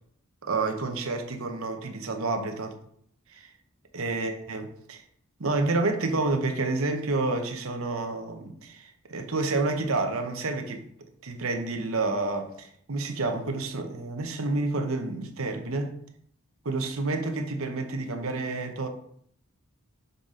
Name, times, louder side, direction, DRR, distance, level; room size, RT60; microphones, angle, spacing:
voice 1, 0.4-2.8 3.3-3.5 3.9-5.0 5.4-10.9 11.2-15.9 16.6-18.9, right 3 dB, 70° right, 0.9 m, -29 dB
6.7 x 4.0 x 3.8 m
head